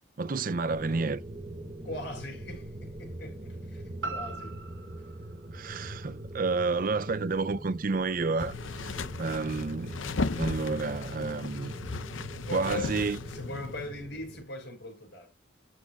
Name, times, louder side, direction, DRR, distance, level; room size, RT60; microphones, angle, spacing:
voice 1, 0.2-1.2 5.5-10.0 10.3-11.7 12.5-13.2, right 4 dB, 45° right, 0.5 m, -30 dB
sound 1, 0.7-14.4, right 1 dB, 25° right, 1.0 m, -43 dB
voice 2, 1.8-4.6 12.3-15.3, left 1 dB, 60° left, 5.7 m, -40 dB
sound 2, 4.0-8.1 8.5-8.6, right 3 dB, 80° right, 2.4 m, -43 dB
sound 3, 8.4-13.8, left 3 dB, 80° left, 0.7 m, -36 dB
12.5 x 7.6 x 2.4 m
head